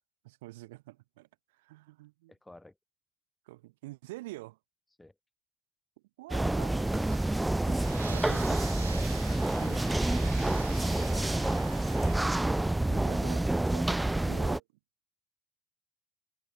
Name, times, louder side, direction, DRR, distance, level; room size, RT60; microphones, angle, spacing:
voice 1, 0.2-2.3 3.5-4.6 6.2-7.8 8.1-8.6 9.6-9.8 12.9-14.6, right 19 dB, 75° right, 6.1 m, -47 dB
voice 2, 2.3-2.7 5.0-5.1 7.7-8.6 9.0-9.9 10.5-11.6, left 2 dB, 10° left, 7.0 m, -48 dB
sound 1, 6.3-14.6, right 1 dB, 10° right, 0.5 m, -28 dB
sound 2, 6.3-12.2, right 6 dB, 90° right, 2.3 m, -47 dB
hypercardioid pair, 70°, 0 cm